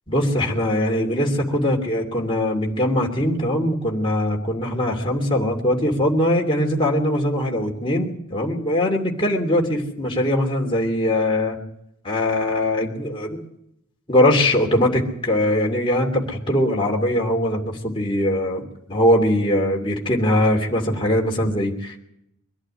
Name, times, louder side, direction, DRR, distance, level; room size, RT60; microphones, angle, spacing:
voice 1, 0.1-11.6 12.0-13.4 14.1-22.0, left 1 dB, 25° left, 0 dB, 2.8 m, -21 dB
23.0 x 11.5 x 9.9 m, 0.78 s
head